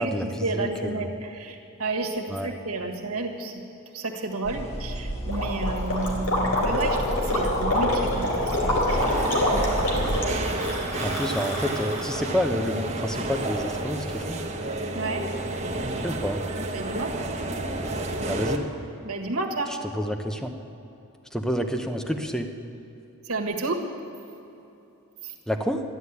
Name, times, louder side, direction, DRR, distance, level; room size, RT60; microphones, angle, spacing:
voice 1, 0.0-3.6 3.9-9.0 14.9-15.3 16.7-17.1 19.0-19.8 23.2-23.9 25.2-25.3, right 2 dB, 80° right, 2 dB, 1.6 m, -31 dB
voice 2, 0.5-1.0 2.3-2.5 11.0-14.4 16.0-16.4 18.3-18.7 19.9-20.6 21.3-22.5 25.5-25.8, equal, 5° left, 5 dB, 0.8 m, -28 dB
sound 1, 4.4-10.3, right 1 dB, 30° left, 1.3 m, -32 dB
Gurgling, 5.3-12.2, left 1 dB, 80° left, 3.8 m, -26 dB
sound 2, 8.9-18.6, right 2 dB, 30° right, 1.1 m, -30 dB
13.0 x 11.5 x 8.3 m, 2.8 s
head